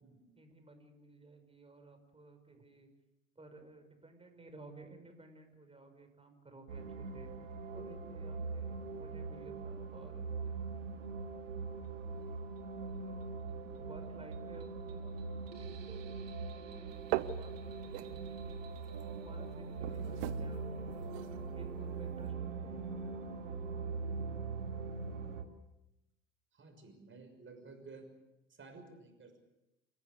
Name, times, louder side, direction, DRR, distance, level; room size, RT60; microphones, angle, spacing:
voice 1, 0.4-2.9 3.4-7.3 7.7-10.5 11.5-11.7 12.0-13.3 13.7-15.3 15.6-17.0 17.3-17.7 18.0-18.6 19.2-21.1 21.5-22.8, right 2 dB, 15° right, 6 dB, 6.0 m, -56 dB
sound 1, 6.7-25.4, right 4 dB, 80° right, 2.0 m, -42 dB
sound 2, 16.9-22.3, right 15 dB, 65° right, 1.1 m, -43 dB
voice 2, 26.5-28.2 28.5-29.4, right 3 dB, 30° right, 6 dB, 6.3 m, -53 dB
28.5 x 15.5 x 8.2 m, 0.95 s
figure-of-eight pair, 65°, 38 cm